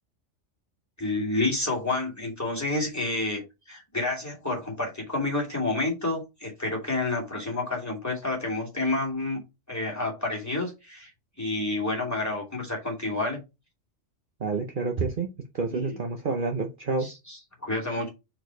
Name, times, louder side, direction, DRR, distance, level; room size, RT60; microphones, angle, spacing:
voice 1, 1.0-3.4 3.7-9.4 9.7-11.1 11.4-13.4 15.7-16.0 17.0-18.1, left 2 dB, 15° left, 2.7 m, -29 dB
voice 2, 14.4-15.3 15.5-17.1, right 4 dB, 45° right, 1.0 m, -28 dB
4.9 x 4.4 x 4.6 m
omnidirectional pair, 1.3 m